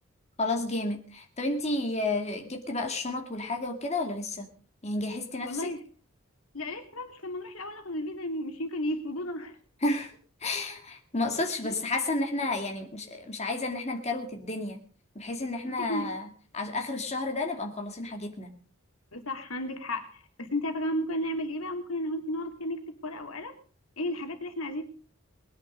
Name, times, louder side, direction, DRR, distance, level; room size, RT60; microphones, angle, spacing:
voice 1, 0.4-4.5 4.8-5.7 9.8-10.1 10.4-14.8 15.2-16.3 16.5-18.5, left 2 dB, 30° left, 3 dB, 2.4 m, -31 dB
voice 2, 5.4-5.8 6.5-9.6 11.6-11.8 15.6-16.1 19.1-23.5 24.0-24.8, left 1 dB, 80° left, 5 dB, 2.7 m, -33 dB
20.5 x 10.5 x 5.2 m, 0.41 s
head